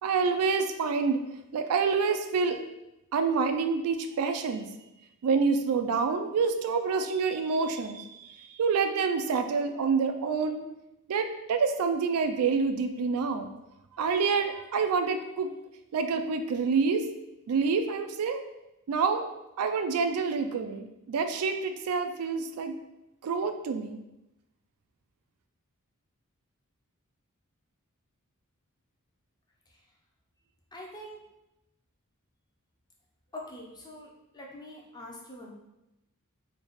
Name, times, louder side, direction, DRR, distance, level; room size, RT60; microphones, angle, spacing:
voice 1, 0.0-1.2 1.5-2.6 3.1-4.7 5.2-10.6 11.1-13.5 13.9-15.5 15.9-17.1 17.5-18.4 18.9-19.3 19.6-22.8 23.2-24.0, right 5 dB, 80° right, 8 dB, 0.3 m, -27 dB
voice 2, 30.7-31.2 33.3-35.5, left 1 dB, 20° left, -1 dB, 0.6 m, -44 dB
3.3 x 2.3 x 4.0 m, 0.93 s
head